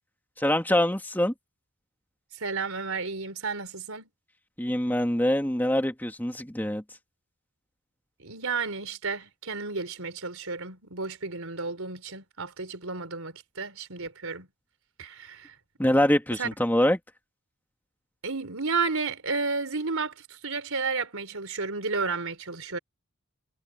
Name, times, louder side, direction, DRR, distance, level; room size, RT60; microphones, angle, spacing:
voice 1, 0.4-1.3 4.6-6.8 15.8-17.0, left 1 dB, 10° left, 2.2 m, -24 dB
voice 2, 2.4-4.1 8.2-14.5 15.0-15.5 16.4-16.5 18.2-22.8, right 4 dB, 75° right, 4.0 m, -32 dB
head